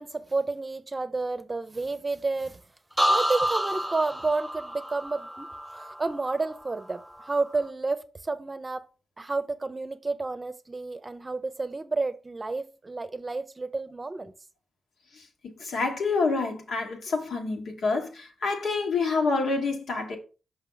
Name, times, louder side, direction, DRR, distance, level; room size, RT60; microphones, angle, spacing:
voice 1, 0.0-2.6 3.1-8.9 9.2-14.3, right 3 dB, 30° right, 0.7 m, -31 dB
sound 1, 3.0-6.8 7.1-7.6, equal, 5° left, 1.1 m, -29 dB
voice 2, 15.4-20.2, left 4 dB, 75° left, 1.4 m, -27 dB
5.6 x 5.5 x 3.9 m
cardioid pair, 65°, 0 cm